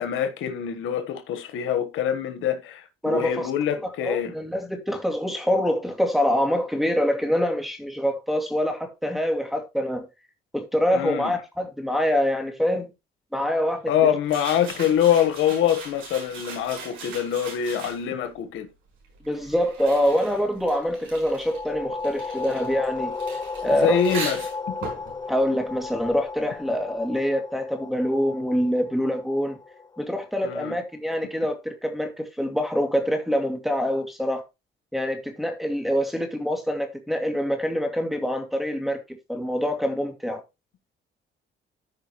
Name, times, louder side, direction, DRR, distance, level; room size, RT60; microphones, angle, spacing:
voice 1, 0.0-4.3 10.9-11.3 13.9-18.7 23.8-24.5 30.4-30.8, left 9 dB, 85° left, 1.3 m, -24 dB
voice 2, 3.0-3.5 4.0-10.0 10.5-12.9 13.3-14.1 19.2-23.1 23.6-24.0 25.3-29.6 30.0-34.4 34.9-40.4, equal, ahead, 2.3 m, -25 dB
sound 1, 14.2-18.3 19.0-26.4, right 4 dB, 80° right, 5.5 m, -40 dB
sound 2, 21.2-30.6, left 4 dB, 20° left, 0.5 m, -34 dB
14.0 x 5.2 x 3.0 m
cardioid pair, 90°, 20 cm